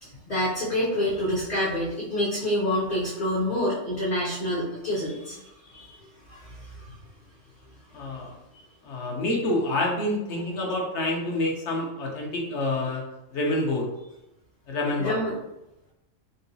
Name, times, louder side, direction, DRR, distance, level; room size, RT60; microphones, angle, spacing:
voice 1, 0.0-6.0 6.3-6.8 8.5-8.6 15.0-15.4, left 1 dB, 40° left, -6 dB, 0.7 m, -28 dB
voice 2, 7.9-8.3 8.8-13.0 13.3-13.9 14.7-15.2, left 1 dB, 60° left, -1 dB, 1.0 m, -27 dB
3.8 x 2.2 x 2.6 m, 0.90 s
omnidirectional pair, 1.4 m